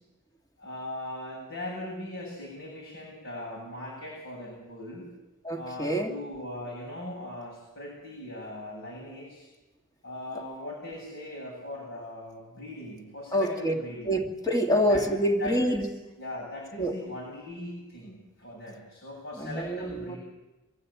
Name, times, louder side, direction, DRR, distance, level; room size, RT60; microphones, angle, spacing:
voice 1, 0.6-5.1 5.5-9.5 10.0-14.2 14.9-15.1 15.4-15.9 16.2-20.2, left 1 dB, 60° left, -4 dB, 8.0 m, -39 dB
voice 2, 5.4-6.1 13.3-13.7 14.1-15.9 16.8-16.9 19.4-20.1, equal, 15° left, 3 dB, 2.2 m, -26 dB
23.5 x 15.0 x 8.6 m, 1.1 s
head